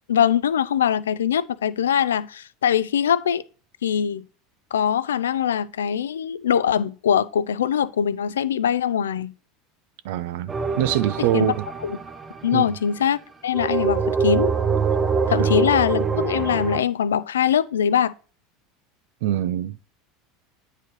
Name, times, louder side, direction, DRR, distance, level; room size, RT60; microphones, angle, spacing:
voice 1, 0.1-3.4 3.8-4.3 4.7-9.3 11.3-11.5 11.8-12.0 12.4-14.5 15.3-18.1, left 8 dB, 85° left, 0.4 m, -22 dB
voice 2, 10.0-11.6 12.5-12.7 15.3-15.5 19.2-19.9, right 13 dB, 70° right, 0.5 m, -24 dB
sound 1, 10.5-12.9 13.5-16.8, right 5 dB, 25° right, 0.7 m, -24 dB
9.0 x 4.7 x 3.1 m
hypercardioid pair, 85°, 0 cm